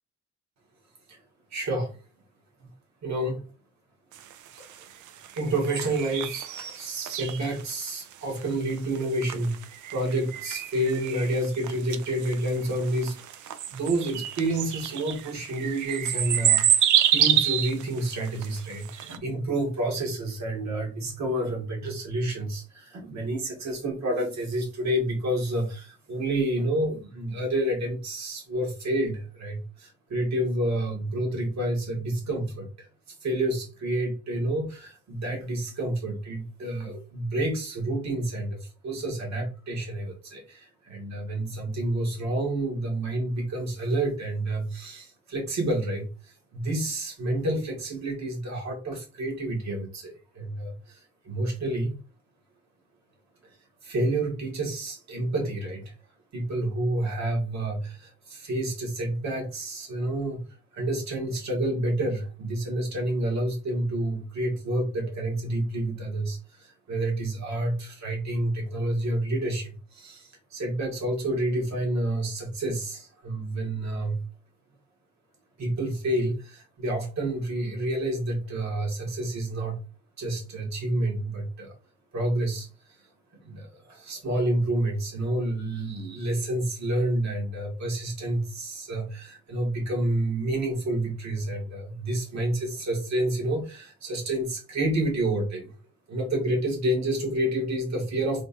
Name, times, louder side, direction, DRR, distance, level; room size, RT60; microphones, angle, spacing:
voice 1, 1.5-2.0 3.0-3.5 4.5-4.8 5.3-9.6 9.9-52.0 53.4-53.6 53.8-55.9 56.3-60.4 60.7-74.2 75.6-79.8 80.2-81.8 82.1-83.1 83.4-95.7 96.1-98.4, right 1 dB, 70° right, 1 dB, 1.7 m, -29 dB
sound 1, 4.1-19.2, right 10 dB, 85° right, 0.5 m, -28 dB
3.6 x 2.4 x 4.0 m, 0.33 s
cardioid pair, 80°, 29 cm